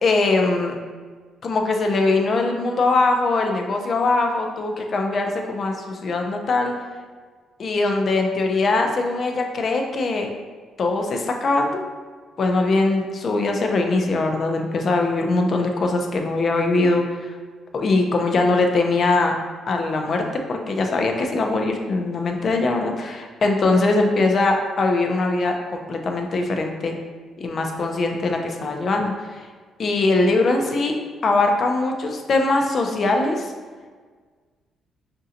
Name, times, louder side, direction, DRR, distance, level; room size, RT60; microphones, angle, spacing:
voice 1, 0.0-0.8 1.4-6.7 7.6-10.3 10.8-11.8 12.4-17.3 17.7-19.4 19.7-27.0 27.4-29.5 29.8-30.9 31.2-33.5, left 3 dB, 50° left, 3 dB, 0.6 m, -21 dB
5.3 x 2.5 x 2.8 m, 1.5 s
cardioid pair, 90°, 0 cm